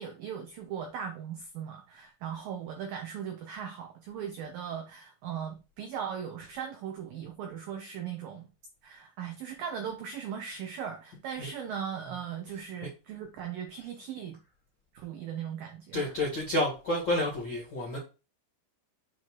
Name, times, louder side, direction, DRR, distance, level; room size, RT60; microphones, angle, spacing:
voice 1, 0.0-8.5 8.8-14.4 14.9-16.1, right 8 dB, 85° right, 1.9 m, -38 dB
voice 2, 15.9-18.0, left 1 dB, 60° left, 1.2 m, -29 dB
7.8 x 3.1 x 6.2 m
omnidirectional pair, 5.3 m